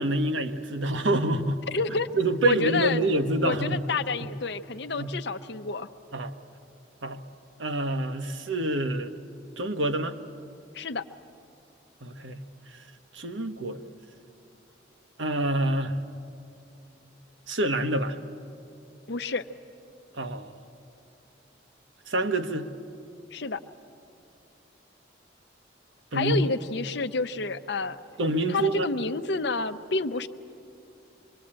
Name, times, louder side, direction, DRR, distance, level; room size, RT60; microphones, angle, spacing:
voice 1, 0.0-1.6 2.1-3.8 5.0-5.1 6.1-6.3 7.0-7.2 7.6-9.1 9.6-10.2 12.0-12.4 13.1-13.8 15.2-16.0 17.5-18.2 20.2-20.6 22.1-22.7 26.1-26.5 28.2-28.9, right 1 dB, 75° right, 7 dB, 1.1 m, -27 dB
voice 2, 1.7-2.1 2.4-3.0 3.4-5.9 10.7-11.0 19.1-19.5 23.3-23.6 26.1-28.0 28.5-30.3, left 3 dB, 60° left, 10 dB, 0.7 m, -29 dB
25.5 x 22.5 x 8.8 m, 2.6 s
head